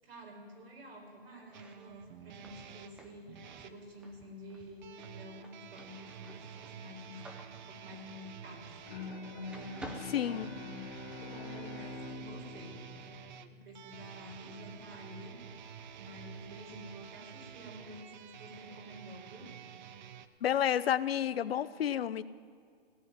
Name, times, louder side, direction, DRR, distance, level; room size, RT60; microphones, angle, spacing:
voice 1, 0.0-7.4 7.6-13.1 13.5-15.4 16.0-19.6, left 1 dB, 75° right, 0 dB, 5.0 m, -50 dB
sound 1, 1.4-9.2 9.5-11.1, right 1 dB, 5° right, 0.5 m, -53 dB
sound 2, 1.5-3.8 4.8-20.3, right 8 dB, 50° right, 0.8 m, -50 dB
Bowed string instrument, 8.9-13.9, left 3 dB, 50° left, 2.6 m, -45 dB
voice 2, 10.1-10.5 20.4-22.2, left 10 dB, 75° left, 16 dB, 0.7 m, -30 dB
16.5 x 7.9 x 9.3 m, 2.2 s
hypercardioid pair, 145°, 31 cm